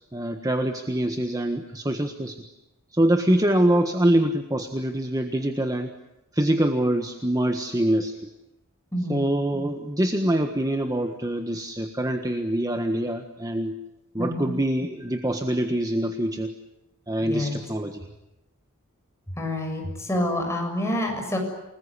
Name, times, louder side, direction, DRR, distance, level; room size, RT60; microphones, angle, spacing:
voice 1, 0.1-2.5 2.9-5.9 6.3-8.1 9.1-13.7 14.1-16.5 17.1-18.1, right 1 dB, 15° right, 5 dB, 1.5 m, -24 dB
voice 2, 8.9-9.3 14.2-14.5 17.2-17.6 19.3-21.4, left 1 dB, 15° left, 2 dB, 7.3 m, -28 dB
29.0 x 20.5 x 9.9 m, 0.94 s
head